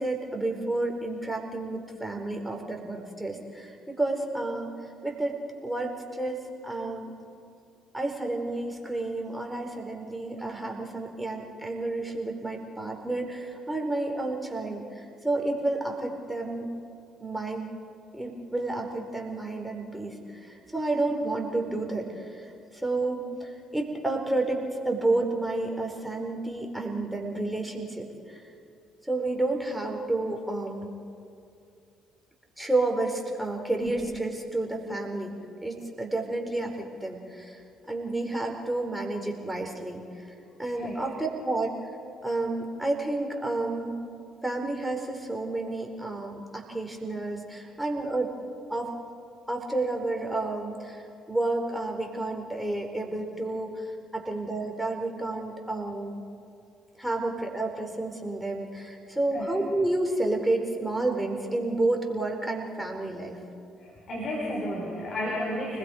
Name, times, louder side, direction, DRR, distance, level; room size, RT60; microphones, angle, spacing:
voice 1, 0.0-4.7 5.0-7.1 7.9-16.7 17.2-17.7 18.1-28.4 29.0-30.9 32.6-35.3 35.6-40.3 40.6-41.7 42.2-44.0 44.4-48.3 48.7-48.9 49.5-51.0 51.3-56.2 57.0-63.4, right 2 dB, 5° right, 1 dB, 4.5 m, -30 dB
voice 2, 63.8-65.8, left 1 dB, 50° left, -3 dB, 5.8 m, -32 dB
30.0 x 20.5 x 5.1 m, 2.5 s
hypercardioid pair, 50°, 0 cm